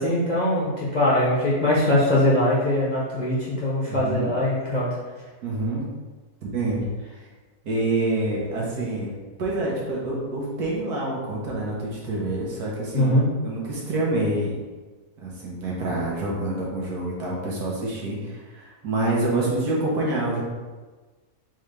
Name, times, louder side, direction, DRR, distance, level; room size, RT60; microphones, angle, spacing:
voice 1, 0.0-4.9 12.9-13.3, left 1 dB, 40° left, -7 dB, 0.7 m, -22 dB
voice 2, 3.9-4.3 5.4-5.9 6.4-6.9 7.1-7.2 7.6-13.1 13.4-14.6 15.2-20.4, right 2 dB, 85° right, -4 dB, 1.7 m, -27 dB
4.4 x 3.7 x 3.3 m, 1.3 s
omnidirectional pair, 1.6 m